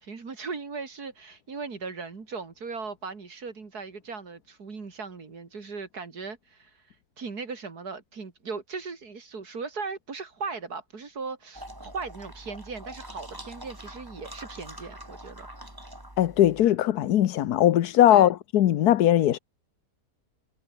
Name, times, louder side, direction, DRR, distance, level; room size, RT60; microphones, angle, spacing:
voice 1, 0.0-6.7 7.2-15.5 18.1-18.3, right 4 dB, 80° right, 3.2 m, -38 dB
sound 1, 11.5-16.7, right 1 dB, 15° right, 5.5 m, -44 dB
voice 2, 16.2-19.4, left 12 dB, 85° left, 1.3 m, -20 dB
omnidirectional pair, 1.6 m